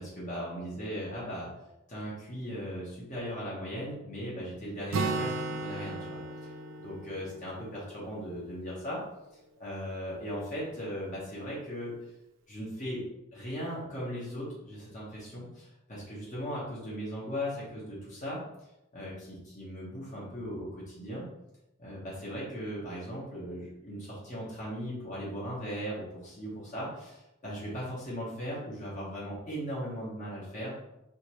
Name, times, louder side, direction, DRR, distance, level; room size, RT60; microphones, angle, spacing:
voice 1, 0.0-1.5 1.9-6.5 6.8-9.0 9.6-11.9 12.5-13.0 13.3-18.4 18.9-21.3 21.8-30.8, equal, 35° left, -6 dB, 1.1 m, -38 dB
Acoustic guitar, 4.9-8.6, right 3 dB, 75° right, 0.4 m, -35 dB
5.0 x 2.6 x 3.0 m, 0.89 s
head